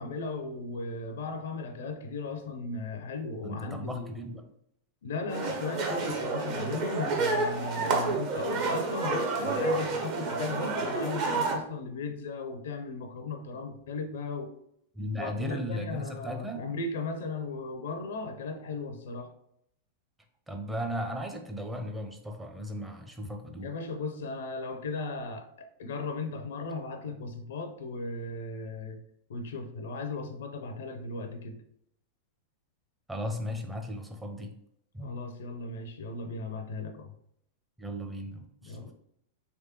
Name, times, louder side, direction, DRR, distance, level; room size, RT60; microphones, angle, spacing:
voice 1, 0.0-4.1 5.0-14.5 15.2-19.3 23.6-29.0 29.3-31.6 35.0-37.1 38.6-38.9, left 3 dB, 65° left, 0.5 m, -36 dB
voice 2, 3.4-4.5 14.9-16.7 20.5-23.7 33.1-34.5 34.9-35.1 37.8-38.9, equal, 10° right, 0.6 m, -36 dB
sound 1, 5.3-11.5, right 3 dB, 45° right, 0.8 m, -29 dB
3.4 x 3.2 x 2.8 m
figure-of-eight pair, 95°, 0 cm